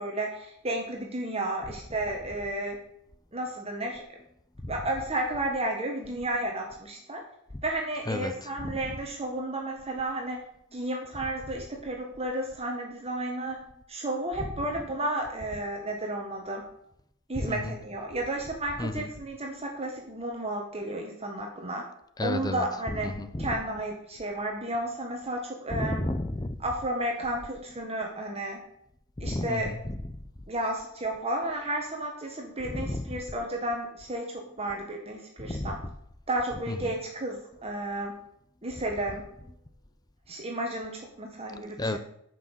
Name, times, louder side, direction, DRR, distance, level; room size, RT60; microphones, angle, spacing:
voice 1, 0.0-2.8 3.3-4.0 4.7-7.2 7.6-10.4 10.7-13.6 13.9-16.6 17.3-21.8 22.2-23.1 23.4-26.0 26.6-28.6 29.2-29.7 30.5-35.8 36.3-38.1 38.6-39.2 40.3-42.0, right 1 dB, 30° right, 1 dB, 1.5 m, -32 dB
voice 2, 8.1-8.7 14.4-14.5 17.4-17.8 18.8-19.1 22.2-23.5 25.7-26.6 29.2-30.1 32.6-33.2 35.4-35.9 36.7-36.9 41.8-42.0, left 1 dB, 20° left, 11 dB, 0.6 m, -32 dB
10.0 x 6.1 x 7.3 m, 0.74 s
head